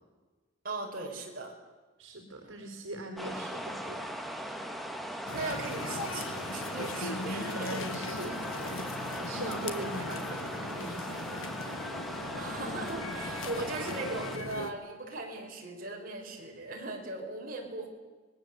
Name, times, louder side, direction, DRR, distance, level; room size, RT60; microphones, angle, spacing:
voice 1, 0.6-1.5 2.4-2.6 5.3-7.8 12.4-17.9, right 2 dB, 45° right, -1 dB, 5.4 m, -38 dB
voice 2, 2.0-4.1 7.7-8.5 8.9-11.6, right 2 dB, 70° right, 4 dB, 4.6 m, -41 dB
sound 1, 3.2-14.4, equal, ahead, 1.8 m, -39 dB
sound 2, 5.3-14.7, left 2 dB, 80° left, 1.9 m, -38 dB
25.5 x 21.0 x 8.2 m, 1.3 s
head